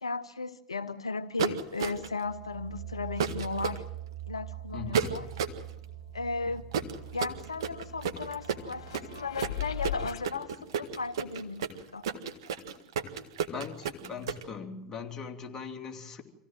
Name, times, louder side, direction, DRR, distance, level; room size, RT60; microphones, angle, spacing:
voice 1, 0.0-3.8 4.3-5.3 6.1-6.6 7.1-10.5 10.8-12.0, left 4 dB, 85° left, 13 dB, 0.7 m, -35 dB
sound 1, 1.4-2.2 3.2-3.8 4.9-5.6 6.7-14.4, right 6 dB, 65° right, 1.7 m, -31 dB
sound 2, 1.8-11.4, right 13 dB, 35° right, 3.8 m, -45 dB
voice 2, 4.7-5.2 13.5-16.2, left 6 dB, 25° left, 1 dB, 3.1 m, -40 dB
sound 3, 5.3-10.2, left 10 dB, 65° left, 1.7 m, -41 dB
25.5 x 16.5 x 7.7 m, 0.86 s
figure-of-eight pair, 85°, 3 cm